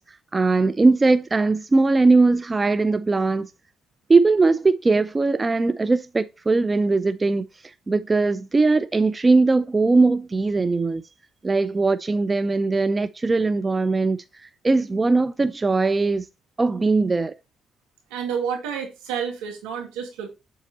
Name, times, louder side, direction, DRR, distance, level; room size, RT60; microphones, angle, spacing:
voice 1, 0.3-3.5 4.1-7.5 7.9-11.0 11.4-16.3 16.6-17.3, right 3 dB, 30° right, 0.5 m, -20 dB
voice 2, 18.1-20.3, right 7 dB, 85° right, 2.1 m, -29 dB
7.5 x 3.9 x 3.9 m
supercardioid pair, 55°, 0 cm